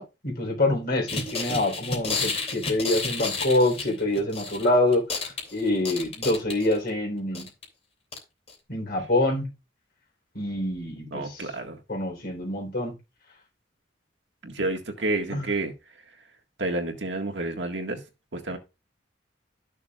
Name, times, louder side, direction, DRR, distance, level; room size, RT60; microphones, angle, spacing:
voice 1, 0.0-7.5 8.7-9.5 10.3-11.5 11.9-12.9 15.3-15.5, left 1 dB, 55° left, 3.8 m, -26 dB
sound 1, 1.1-4.7 4.9-6.9 7.3-7.6 8.1-8.2 8.5-8.6, left 4 dB, 35° left, 2.9 m, -31 dB
voice 2, 11.1-11.8 14.4-15.7 16.6-18.0 18.3-18.6, right 2 dB, 75° right, 1.8 m, -29 dB
12.5 x 6.6 x 2.4 m
head